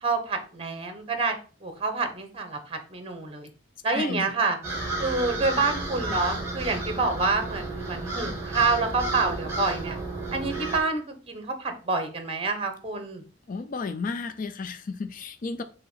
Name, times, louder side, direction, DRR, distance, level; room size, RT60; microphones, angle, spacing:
voice 1, 0.0-1.4 1.6-3.5 3.8-4.6 5.0-10.0 10.3-13.2, right 3 dB, 30° right, 1.1 m, -27 dB
voice 2, 3.9-4.3 13.5-15.6, left 4 dB, 45° left, 0.4 m, -33 dB
sound 1, 4.6-10.8, right 2 dB, 15° right, 2.0 m, -32 dB
6.8 x 3.0 x 5.6 m
head